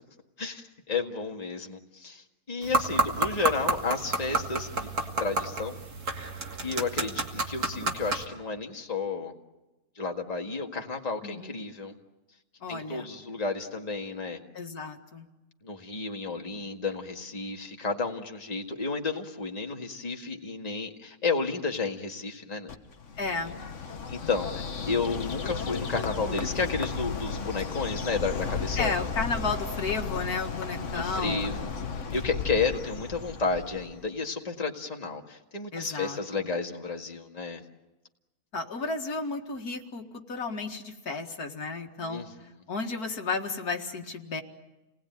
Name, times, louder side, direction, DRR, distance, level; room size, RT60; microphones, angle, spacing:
voice 1, 0.4-5.8 6.6-9.3 10.0-11.9 12.7-14.4 15.6-22.7 23.4-23.5 24.1-29.1 30.9-37.6 42.0-42.3, left 4 dB, 25° left, 2 dB, 2.0 m, -32 dB
sound 1, 2.6-8.2, right 3 dB, 85° right, 3.0 m, -30 dB
voice 2, 11.2-11.5 12.6-13.1 14.5-15.3 23.2-23.6 28.8-31.6 35.7-36.5 38.5-42.2 42.7-44.4, left 4 dB, 85° left, 3 dB, 2.4 m, -33 dB
Bird, 22.7-34.1, left 5 dB, 55° left, 1.5 m, -34 dB
29.5 x 20.0 x 9.4 m, 1.0 s
omnidirectional pair, 1.6 m